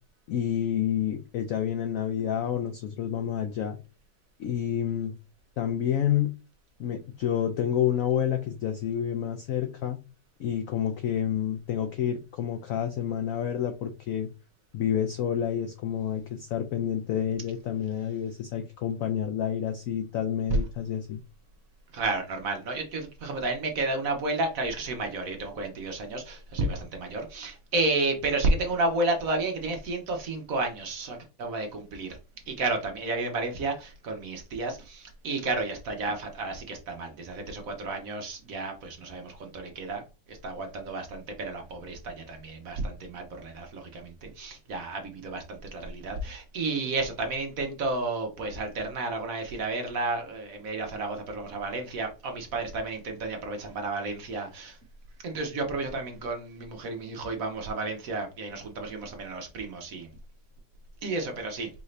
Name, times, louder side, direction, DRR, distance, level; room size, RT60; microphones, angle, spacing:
voice 1, 0.3-3.8 4.4-5.1 5.6-6.3 6.8-10.0 10.4-14.3 14.7-21.2, left 9 dB, 80° left, 6 dB, 0.7 m, -29 dB
voice 2, 21.9-32.2 32.5-40.0 40.3-54.8 55.2-60.1 61.0-61.7, right 2 dB, 60° right, 4 dB, 1.1 m, -31 dB
4.8 x 2.6 x 3.2 m, 0.31 s
omnidirectional pair, 2.0 m